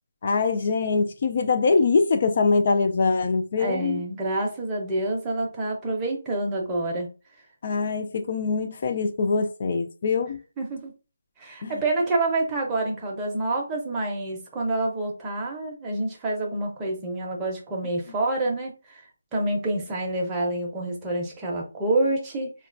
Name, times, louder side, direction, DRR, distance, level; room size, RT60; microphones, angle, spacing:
voice 1, 0.2-4.0 7.6-10.4 11.6-11.7, left 4 dB, 40° left, 0.3 m, -23 dB
voice 2, 3.6-7.1 10.6-10.9 11.4-19.0 19.3-22.5, right 2 dB, 10° right, 0.6 m, -27 dB
3.7 x 2.2 x 2.5 m
figure-of-eight pair, 165°, 0 cm